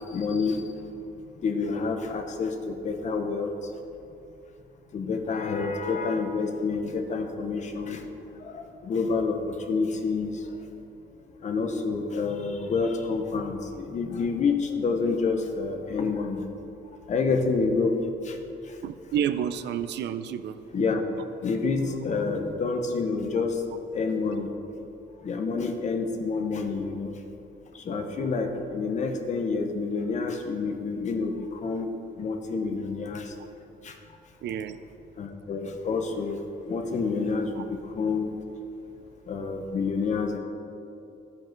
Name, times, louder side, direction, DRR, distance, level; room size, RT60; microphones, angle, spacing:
voice 1, 0.1-0.6 1.4-3.5 4.9-8.0 8.4-10.4 11.4-16.4 17.1-18.0 18.2-18.4 20.7-21.0 21.4-23.6 23.9-24.5 25.2-27.1 27.7-31.9 32.2-33.3 33.8-33.9 35.2-36.4 36.7-38.4 39.3-40.4, left 4 dB, 40° left, 5 dB, 0.8 m, -28 dB
voice 2, 18.8-20.6 34.4-34.8 37.6-37.7, right 9 dB, 70° right, 12 dB, 0.4 m, -30 dB
14.0 x 5.3 x 4.5 m, 2.8 s
cardioid pair, 175°, 18 cm